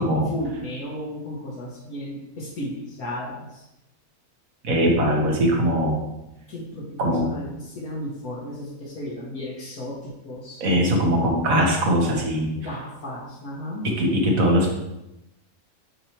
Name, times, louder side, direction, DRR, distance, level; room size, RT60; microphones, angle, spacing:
voice 1, 0.0-3.6 6.5-10.6 12.6-13.9, left 1 dB, 85° left, -6 dB, 1.8 m, -34 dB
voice 2, 4.6-6.0 7.0-7.3 10.6-12.5 14.0-14.7, equal, 70° right, 0 dB, 1.7 m, -21 dB
8.4 x 3.1 x 4.5 m, 0.92 s
omnidirectional pair, 1.5 m